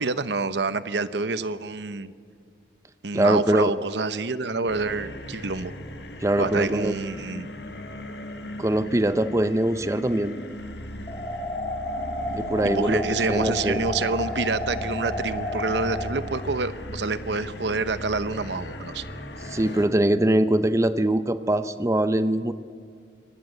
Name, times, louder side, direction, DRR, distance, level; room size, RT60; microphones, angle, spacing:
voice 1, 0.0-2.1 3.0-5.7 6.4-7.5 12.6-19.0, right 3 dB, 70° right, 13 dB, 0.9 m, -27 dB
voice 2, 3.1-3.7 6.2-6.9 8.6-10.3 12.3-13.8 19.4-22.5, right 1 dB, 15° right, 12 dB, 0.6 m, -22 dB
sound 1, 4.7-19.9, left 1 dB, 65° left, 2.2 m, -37 dB
sound 2, 11.1-16.1, left 1 dB, 25° left, 3.4 m, -31 dB
25.0 x 20.0 x 7.9 m, 2.2 s
head